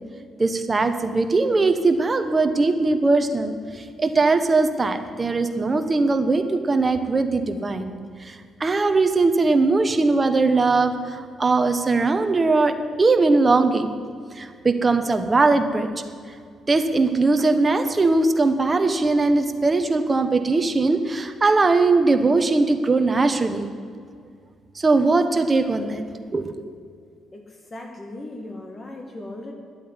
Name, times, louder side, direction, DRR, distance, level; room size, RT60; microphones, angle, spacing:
voice 1, 0.4-7.9 8.2-13.9 14.4-15.9 16.7-23.7 24.7-26.0 26.3-26.6, right 3 dB, 25° right, 7 dB, 1.2 m, -20 dB
voice 2, 27.7-29.5, left 1 dB, 30° left, 3 dB, 1.6 m, -37 dB
10.5 x 8.5 x 9.8 m, 2.2 s
cardioid pair, 90°, 0 cm